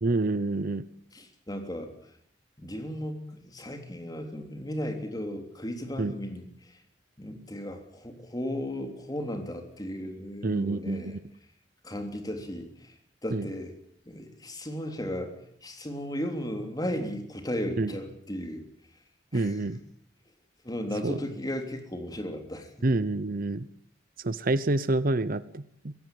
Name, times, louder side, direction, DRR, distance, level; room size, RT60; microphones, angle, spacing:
voice 1, 0.0-0.8 6.0-6.1 10.4-11.2 13.3-13.4 17.8-17.9 19.3-19.8 21.0-21.2 22.8-23.7 24.2-25.9, right 2 dB, 50° right, 16 dB, 0.9 m, -27 dB
voice 2, 1.1-2.0 2.6-6.8 7.2-11.2 11.8-12.9 13.2-13.7 14.0-18.6 19.3-19.8 20.6-22.9, equal, 20° left, 6 dB, 3.4 m, -35 dB
22.0 x 17.0 x 9.3 m, 0.68 s
head